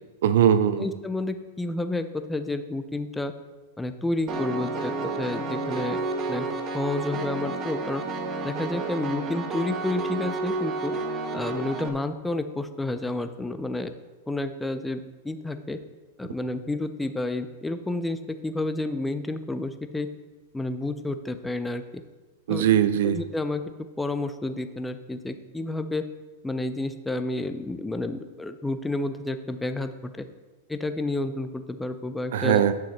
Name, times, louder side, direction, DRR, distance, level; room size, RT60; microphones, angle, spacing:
voice 1, 0.2-0.9 22.5-23.2 32.3-32.7, right 9 dB, 70° right, 13 dB, 0.5 m, -20 dB
voice 2, 0.8-3.3 3.8-6.0 6.3-6.5 6.7-8.0 8.4-10.9 11.3-13.9 14.3-15.8 16.2-20.1 20.5-22.0 22.5-22.7 23.0-23.6 24.0-26.0 26.4-30.3 30.7-32.7, left 2 dB, 10° left, 9 dB, 0.6 m, -30 dB
Piano, 4.3-11.9, right 3 dB, 35° right, 1.2 m, -31 dB
10.5 x 5.8 x 4.4 m, 1.2 s
hypercardioid pair, 105°, 0 cm